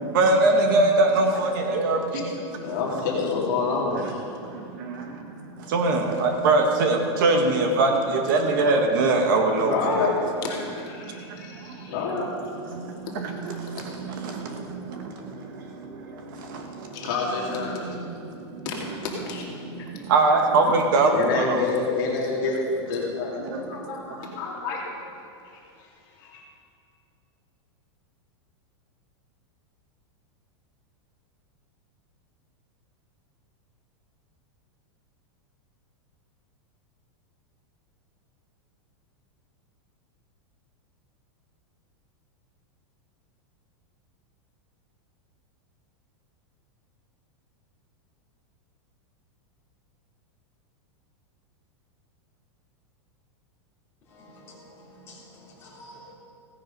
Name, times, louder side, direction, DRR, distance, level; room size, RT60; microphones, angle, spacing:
voice 1, 0.0-2.7 4.4-10.1 11.0-11.9 12.7-17.1 17.7-18.7 19.6-21.6 23.4-23.8, right 2 dB, 45° right, 3 dB, 1.4 m, -24 dB
voice 2, 1.7-2.2 2.5-4.2 9.7-12.3 16.9-18.0 18.6-19.4 21.1-25.0 25.5-25.6 26.2-26.4, left 4 dB, 45° left, -2 dB, 2.4 m, -28 dB
voice 3, 54.1-56.1, equal, 15° left, -7 dB, 3.3 m, -49 dB
16.5 x 9.8 x 5.3 m, 2.6 s
supercardioid pair, 175°, 15 cm